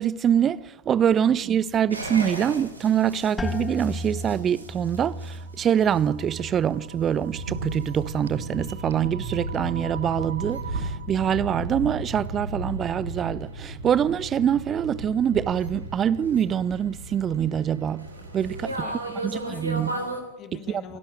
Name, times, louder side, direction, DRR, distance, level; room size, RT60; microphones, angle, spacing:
voice 1, 0.0-18.1 18.3-18.9 19.2-20.0 20.7-20.8, right 9 dB, 25° right, 0.7 m, -24 dB
sound 1, 1.5-11.1, right 8 dB, 65° right, 1.0 m, -45 dB
sound 2, 1.9-20.2, right 1 dB, 80° right, 3.6 m, -35 dB
sound 3, 3.4-9.0 9.3-10.0 10.6-11.0, left 2 dB, 15° left, 2.0 m, -37 dB
voice 2, 18.8-21.0, left 9 dB, 35° left, 1.9 m, -44 dB
28.0 x 11.5 x 9.1 m
figure-of-eight pair, 90°, 0 cm